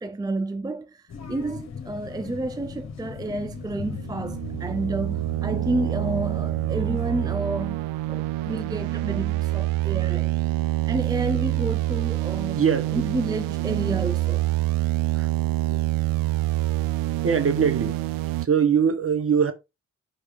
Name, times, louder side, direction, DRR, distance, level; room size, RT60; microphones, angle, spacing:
voice 1, 0.0-10.4 10.9-12.6 12.9-14.5, right 2 dB, 10° right, 0.5 m, -30 dB
sound 1, 1.1-7.4, left 6 dB, 50° left, 1.3 m, -39 dB
sound 2, 3.3-18.5, right 17 dB, 75° right, 0.5 m, -26 dB
voice 2, 12.6-13.0 15.1-15.3 15.7-15.8 17.2-18.0 18.4-19.5, right 7 dB, 40° right, 1.4 m, -23 dB
5.4 x 3.5 x 5.1 m
hypercardioid pair, 40°, 35 cm